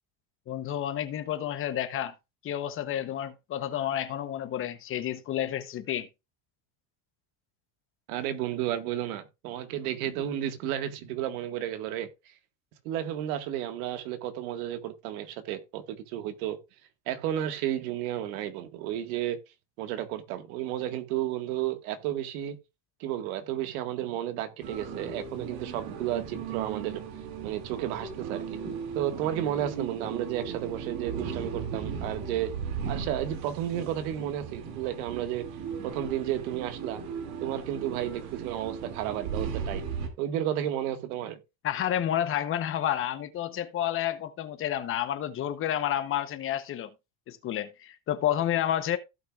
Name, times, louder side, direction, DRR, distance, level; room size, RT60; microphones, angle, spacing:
voice 1, 0.5-2.1 2.4-6.1 41.6-46.9 47.3-49.0, left 11 dB, 30° left, 0.9 m, -30 dB
voice 2, 8.1-12.1 12.9-16.6 17.1-19.4 19.8-22.6 23.0-27.0 27.4-28.4 29.0-32.5 32.9-35.5 35.8-37.0 37.4-39.8 40.2-41.4, right 11 dB, 85° right, 1.8 m, -32 dB
sound 1, 24.6-40.1, right 6 dB, 70° right, 2.6 m, -37 dB
16.0 x 6.0 x 2.4 m
cardioid pair, 165°, 41 cm